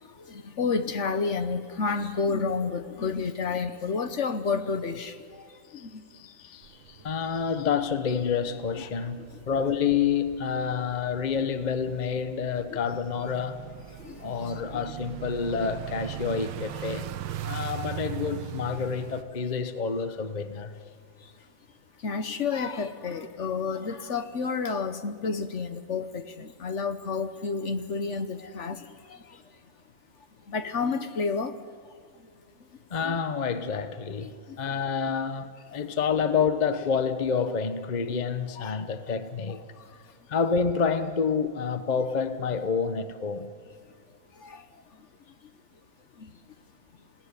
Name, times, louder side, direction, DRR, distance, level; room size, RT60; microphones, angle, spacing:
voice 1, 0.0-6.1 8.8-9.4 12.7-12.8 14.0-14.8 17.4-17.5 21.2-21.3 22.0-29.4 30.5-31.6 33.0-33.1 34.2-34.6 38.6-39.2 39.8-39.9 44.3-44.7 46.2-46.3, left 4 dB, 50° left, 0.9 m, -31 dB
voice 2, 6.1-13.6 14.2-17.1 17.4-20.7 32.9-39.6 40.3-43.5, left 6 dB, 75° left, 0.4 m, -28 dB
sound 1, 6.6-19.2, right 12 dB, 75° right, 1.7 m, -40 dB
28.0 x 17.5 x 9.7 m
omnidirectional pair, 2.4 m